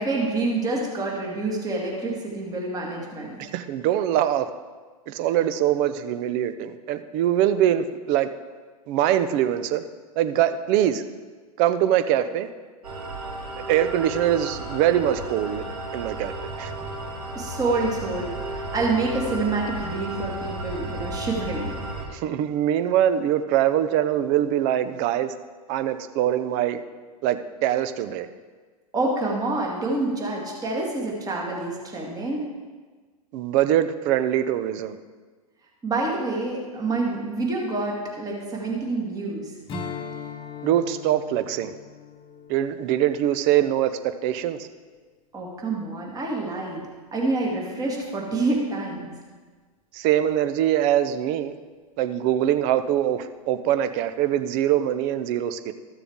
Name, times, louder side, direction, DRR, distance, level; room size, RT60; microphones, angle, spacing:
voice 1, 0.0-3.4 17.3-21.7 28.9-32.4 35.8-39.5 45.3-46.8 47.1-49.1, right 2 dB, 20° right, -2 dB, 2.1 m, -27 dB
voice 2, 3.4-4.5 5.1-8.3 8.9-9.8 10.2-11.0 11.6-12.5 13.7-15.6 15.9-16.3 16.6-16.7 22.1-25.3 25.7-26.8 27.2-28.3 33.3-35.0 40.6-41.7 42.5-44.7 49.9-51.6 52.0-55.7, right 11 dB, 40° right, 11 dB, 0.7 m, -23 dB
sound 1, 12.8-22.1, right 2 dB, 75° right, 1.9 m, -33 dB
Strum, 39.7-44.4, left 5 dB, 25° left, 1.2 m, -39 dB
14.0 x 6.9 x 3.6 m, 1.4 s
figure-of-eight pair, 100°, 20 cm